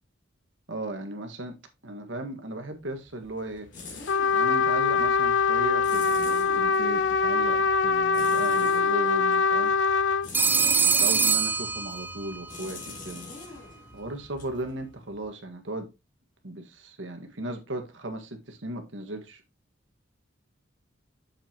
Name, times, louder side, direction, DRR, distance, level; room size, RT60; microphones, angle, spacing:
voice 1, 0.7-1.5 1.8-3.7 4.3-9.7 10.6-13.3 13.9-15.9 16.4-19.4, right 1 dB, 80° right, 1.7 m, -36 dB
sound 1, 2.8-15.4, left 3 dB, 45° left, 3.5 m, -46 dB
Trumpet, 4.1-10.3, left 5 dB, 75° left, 0.5 m, -23 dB
Telephone, 10.3-12.4, right 5 dB, 10° right, 0.5 m, -23 dB
7.6 x 7.4 x 2.9 m
head